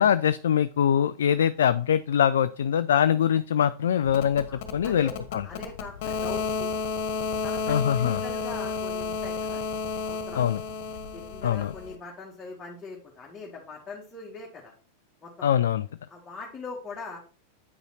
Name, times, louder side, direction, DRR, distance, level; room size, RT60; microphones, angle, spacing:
voice 1, 0.0-5.4 7.7-8.2 10.4-10.6 11.4-11.7 15.4-15.9, left 9 dB, 60° left, 13 dB, 0.3 m, -23 dB
sound 1, 4.0-11.9, left 4 dB, 45° left, 1.6 m, -32 dB
voice 2, 4.5-5.1 5.4-6.7 7.4-9.6 10.0-10.5 11.1-14.7 15.2-15.5 16.1-17.2, left 4 dB, 15° left, -4 dB, 2.0 m, -41 dB
8.8 x 5.5 x 4.2 m, 0.37 s
figure-of-eight pair, 90°, 0 cm